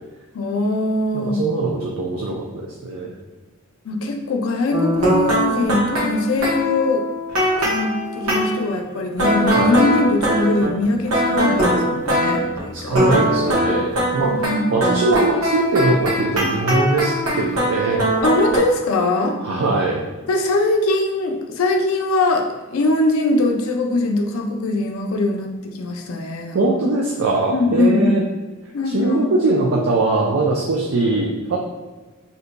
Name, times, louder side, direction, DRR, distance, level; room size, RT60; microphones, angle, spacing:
voice 1, 0.3-1.5 3.9-7.0 7.6-13.0 14.3-14.7 18.2-19.4 20.3-26.6 27.5-28.2 28.7-29.3, left 2 dB, 80° left, 3 dB, 0.4 m, -21 dB
voice 2, 1.1-2.4 2.8-3.1 9.5-9.7 12.7-14.4 14.7-18.0 19.4-20.0 26.5-28.2 28.9-31.6, right 2 dB, 70° right, -1 dB, 0.4 m, -21 dB
sound 1, 4.7-8.6 9.2-12.6 12.9-18.6, right 1 dB, 85° right, 0.9 m, -21 dB
2.7 x 2.2 x 3.9 m, 1.3 s
head